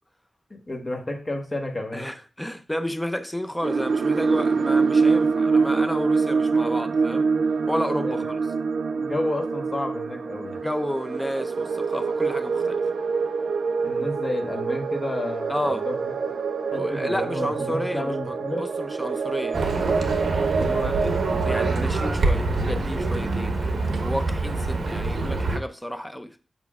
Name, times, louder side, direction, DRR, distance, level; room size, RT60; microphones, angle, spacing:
voice 1, 0.5-2.1 8.0-8.2 8.9-10.7 13.8-15.9 16.7-18.7 20.5-21.0, left 1 dB, 30° left, 1.1 m, -31 dB
voice 2, 1.9-7.3 7.7-8.4 10.6-12.9 15.5-15.9 16.8-19.6 20.5-21.0 21.4-26.4, equal, 5° left, 0.5 m, -31 dB
sound 1, 3.6-21.7, right 5 dB, 85° right, 0.4 m, -25 dB
Livestock farm animals working animals, 19.5-25.6, right 3 dB, 65° right, 1.0 m, -25 dB
7.2 x 5.7 x 2.3 m
wide cardioid pair, 145°, 0 cm